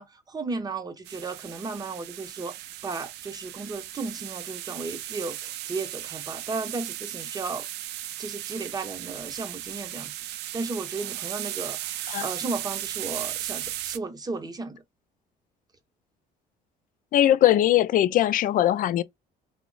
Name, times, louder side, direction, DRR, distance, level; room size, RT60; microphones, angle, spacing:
voice 1, 0.0-2.6 2.8-7.7 8.2-10.1 10.5-14.8, right 3 dB, 25° right, 0.7 m, -34 dB
sound 1, 1.1-14.0, right 14 dB, 80° right, 0.4 m, -36 dB
voice 2, 17.1-19.0, left 12 dB, 55° left, 0.4 m, -20 dB
2.9 x 2.0 x 3.8 m
cardioid pair, 110°, 17 cm